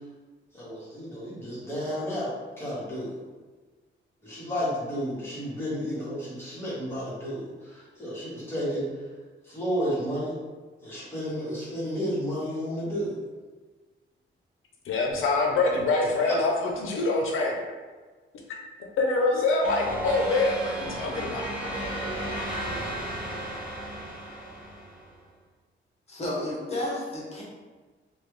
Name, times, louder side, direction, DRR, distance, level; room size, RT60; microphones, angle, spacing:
voice 1, 0.5-2.3 2.6-3.2 4.2-8.9 9.4-10.3 10.8-13.2 16.2-16.4, equal, 10° left, -10 dB, 1.3 m, -32 dB
voice 2, 14.9-17.6 19.0-21.4, left 3 dB, 90° left, 0 dB, 0.5 m, -25 dB
sound 1, 19.6-25.1, right 1 dB, 5° right, 1.0 m, -34 dB
voice 3, 26.1-27.4, left 1 dB, 30° left, -5 dB, 0.9 m, -31 dB
3.2 x 2.3 x 3.1 m, 1.4 s
wide cardioid pair, 140°, 20 cm